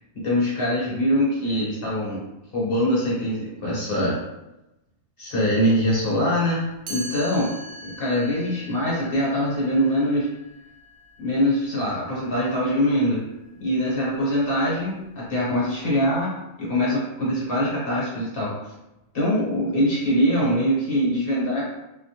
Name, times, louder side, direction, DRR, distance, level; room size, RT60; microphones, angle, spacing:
voice 1, 0.2-2.2 2.5-4.2 5.2-7.5 7.8-10.3 11.2-13.2 13.6-16.3 16.6-18.5 19.1-21.7, equal, 55° left, -6 dB, 1.0 m, -23 dB
Chime, 6.9-12.7, equal, 90° right, 0.9 m, -42 dB
2.2 x 2.2 x 2.7 m, 0.96 s
omnidirectional pair, 1.2 m